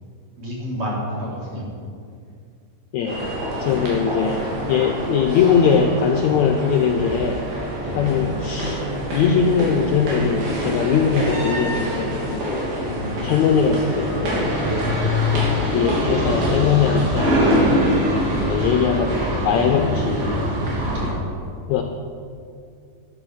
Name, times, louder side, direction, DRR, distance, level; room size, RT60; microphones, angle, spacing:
voice 1, 0.4-1.6 7.8-8.1 12.8-13.5 14.6-15.1 20.9-21.5, equal, 45° right, -5 dB, 4.8 m, -30 dB
voice 2, 2.9-3.2 3.6-7.5 8.0-12.7 13.2-14.5 15.3-17.4 18.4-20.5 21.7-21.8, left 6 dB, 80° left, 4 dB, 1.7 m, -21 dB
sound 1, 3.1-21.1, equal, 90° right, 4.8 m, -24 dB
12.5 x 11.0 x 6.3 m, 2.4 s
omnidirectional pair, 4.1 m